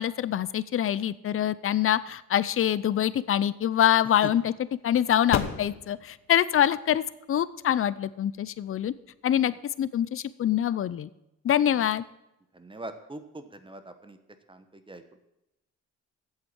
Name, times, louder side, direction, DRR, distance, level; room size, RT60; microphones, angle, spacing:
voice 1, 0.0-4.5 4.8-7.0 7.3-8.9 9.2-11.1 11.4-12.0, left 10 dB, 45° left, 17 dB, 0.6 m, -25 dB
sound 1, 3.1-10.0, left 9 dB, 65° left, 1.1 m, -39 dB
voice 2, 12.5-14.2 14.5-15.2, right 1 dB, 15° right, 10 dB, 1.2 m, -43 dB
8.1 x 7.7 x 8.7 m, 0.88 s
cardioid pair, 90°, 30 cm